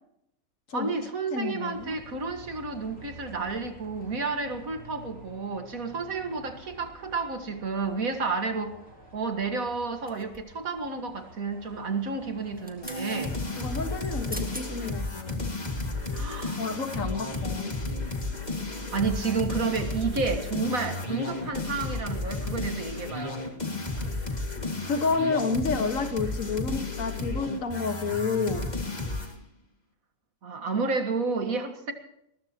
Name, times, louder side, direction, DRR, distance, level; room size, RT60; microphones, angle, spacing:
voice 1, 0.7-8.8 9.1-13.3 16.1-16.7 18.9-23.4 30.4-31.9, right 4 dB, 75° right, 6 dB, 2.2 m, -31 dB
voice 2, 1.3-2.0 13.6-15.5 16.6-17.7 24.9-28.7, left 4 dB, 65° left, 7 dB, 2.0 m, -30 dB
Bus, 1.7-14.9, right 1 dB, 55° right, 4.2 m, -50 dB
sound 1, 10.1-10.7 12.4-13.1 14.0-14.1 14.3-14.7 15.2-15.4, equal, 5° right, 2.1 m, -42 dB
sound 2, 12.8-29.3, left 2 dB, 30° left, 2.3 m, -33 dB
20.5 x 20.5 x 3.0 m, 0.78 s
omnidirectional pair, 1.5 m